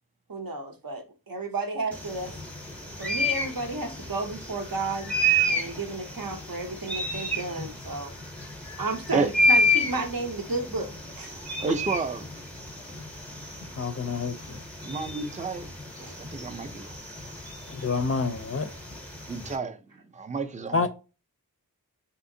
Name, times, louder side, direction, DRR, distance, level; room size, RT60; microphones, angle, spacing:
voice 1, 0.3-2.4 3.0-5.1 5.4-8.2 8.8-10.9 11.2-11.4 16.0-16.1 17.9-18.0, right 3 dB, 60° right, 0.8 m, -32 dB
sound 1, 1.9-19.6, equal, 5° left, 0.8 m, -30 dB
voice 2, 11.6-12.2 14.9-15.7 16.0-17.0 19.3-19.8 20.1-20.9, right 4 dB, 20° right, 0.4 m, -30 dB
voice 3, 13.8-14.6 17.7-18.7 20.7-20.9, left 4 dB, 40° left, 0.4 m, -28 dB
3.4 x 2.8 x 2.6 m
wide cardioid pair, 50°, 38 cm